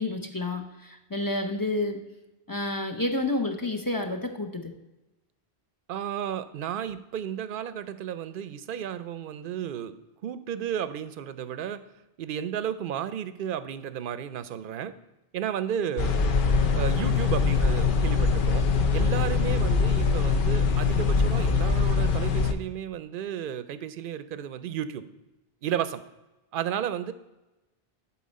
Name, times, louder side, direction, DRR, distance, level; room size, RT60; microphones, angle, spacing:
voice 1, 0.0-2.0 2.5-4.7, left 2 dB, 20° left, 3 dB, 0.8 m, -29 dB
voice 2, 5.9-9.9 10.2-11.8 12.2-15.0 15.3-16.2 16.7-25.1 25.6-26.0 26.5-27.1, right 9 dB, 60° right, 12 dB, 0.7 m, -33 dB
sound 1, 16.0-22.5, left 4 dB, 60° left, 0.9 m, -23 dB
11.5 x 4.5 x 4.1 m, 1.0 s
omnidirectional pair, 1.1 m